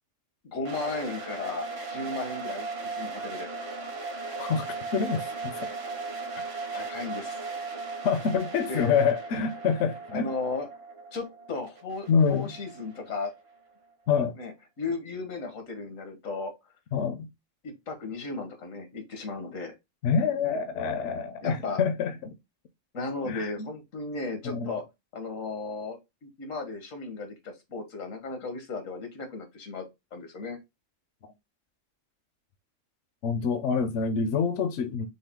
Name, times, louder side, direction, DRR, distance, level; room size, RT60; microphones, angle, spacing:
voice 1, 0.5-3.5 6.4-7.4 8.7-8.9 10.1-10.7 11.1-13.3 14.4-16.5 17.6-19.7 21.4-21.8 22.9-24.8 25.1-29.8 30.1-30.6, left 3 dB, 90° left, 1.6 m, -35 dB
sound 1, 0.6-13.5, right 4 dB, 55° right, 1.3 m, -37 dB
voice 2, 4.9-5.5 8.0-10.3 12.1-12.5 14.1-14.4 16.9-17.3 20.0-22.3 23.2-23.7 24.4-24.7 33.2-35.1, left 6 dB, 70° left, 0.9 m, -26 dB
6.3 x 2.2 x 3.6 m
omnidirectional pair, 1.3 m